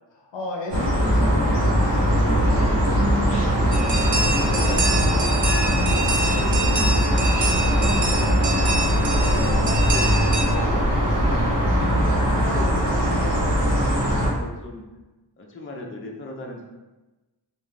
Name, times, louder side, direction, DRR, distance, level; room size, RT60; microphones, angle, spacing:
voice 1, 0.1-2.1 9.3-10.4, left 2 dB, 80° left, -1 dB, 0.5 m, -35 dB
sound 1, 0.7-14.3, equal, 70° right, 1.0 m, -20 dB
voice 2, 3.1-4.8 5.1-7.3 7.7-8.7 9.3-10.8 11.3-11.5 12.1-13.7 14.0-14.9 15.4-16.7, left 2 dB, 30° left, 1 dB, 0.4 m, -37 dB
sound 2, 3.7-10.4, right 2 dB, 45° right, 0.4 m, -27 dB
2.4 x 2.3 x 3.2 m, 1.1 s
wide cardioid pair, 55°, 44 cm